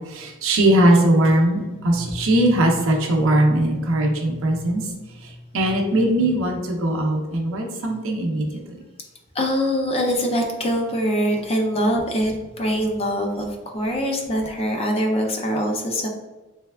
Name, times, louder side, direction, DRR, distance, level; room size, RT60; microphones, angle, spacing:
voice 1, 0.1-4.8 5.5-8.8, right 1 dB, 65° right, 1 dB, 0.6 m, -20 dB
voice 2, 9.3-16.1, equal, 30° left, 2 dB, 0.5 m, -23 dB
3.4 x 3.2 x 2.2 m, 1.2 s
head